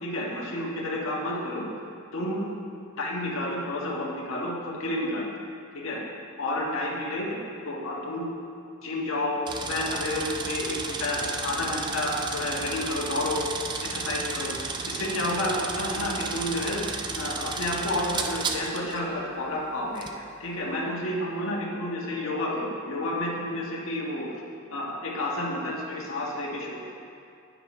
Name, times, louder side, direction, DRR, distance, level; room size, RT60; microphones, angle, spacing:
voice 1, 0.0-1.7 2.1-2.5 3.0-5.3 5.7-6.0 6.4-7.4 7.6-8.3 8.8-13.4 13.8-20.1 20.4-24.3 24.7-26.8, left 1 dB, 70° left, -3 dB, 1.6 m, -30 dB
sound 1, 9.5-19.0 20.0-20.1, right 4 dB, 20° right, 0.4 m, -33 dB
9.8 x 9.5 x 3.3 m, 2.5 s
head